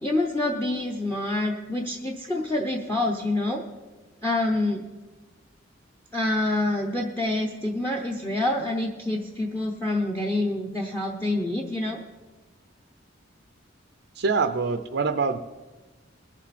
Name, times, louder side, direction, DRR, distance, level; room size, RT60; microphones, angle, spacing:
voice 1, 0.0-3.6 4.2-4.9 6.1-12.0, left 2 dB, 10° left, 2 dB, 0.7 m, -27 dB
voice 2, 14.1-15.4, right 4 dB, 55° right, 8 dB, 0.5 m, -24 dB
21.0 x 7.2 x 4.2 m, 1.2 s
head